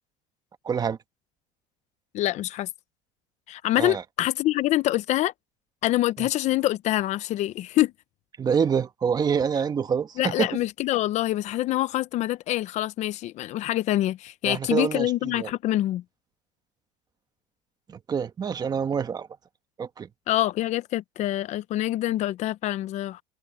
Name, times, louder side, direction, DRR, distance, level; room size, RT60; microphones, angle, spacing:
voice 1, 0.6-1.0 3.8-4.0 6.2-6.3 8.4-10.5 14.4-15.5 17.9-19.3 19.8-20.1, right 6 dB, 25° right, 1.4 m, -26 dB
voice 2, 2.1-2.7 3.5-5.3 5.8-7.9 10.2-16.0 20.3-23.2, left 15 dB, 50° left, 0.9 m, -25 dB
supercardioid pair, 120°, 15 cm